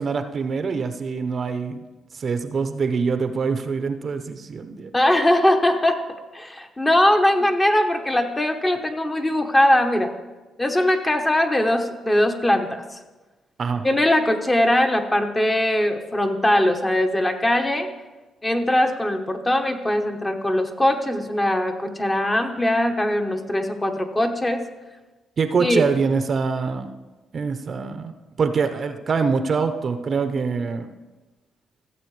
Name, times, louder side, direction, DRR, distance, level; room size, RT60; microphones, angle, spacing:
voice 1, 0.0-1.8 2.1-4.9 13.6-13.9 25.4-26.9 27.3-28.1 28.4-30.9, right 5 dB, 45° right, 9 dB, 0.7 m, -24 dB
voice 2, 4.9-6.0 6.3-10.1 10.6-13.0 13.8-17.9 18.4-24.6 25.6-25.9, left 1 dB, 20° left, 5 dB, 1.0 m, -21 dB
15.0 x 7.5 x 3.2 m, 1.2 s
cardioid pair, 90°, 0 cm